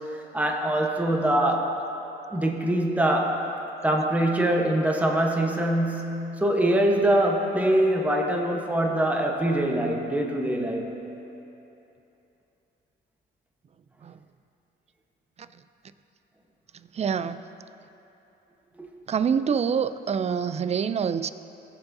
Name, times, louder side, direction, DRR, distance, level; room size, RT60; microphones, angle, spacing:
voice 1, 0.3-1.7 2.3-3.4 3.8-11.0 18.8-18.9, right 1 dB, 5° right, 1 dB, 1.0 m, -23 dB
voice 2, 16.7-17.5 19.1-21.3, right 7 dB, 35° right, 13 dB, 0.4 m, -26 dB
17.0 x 7.1 x 2.7 m, 3.0 s
cardioid pair, 90°, 20 cm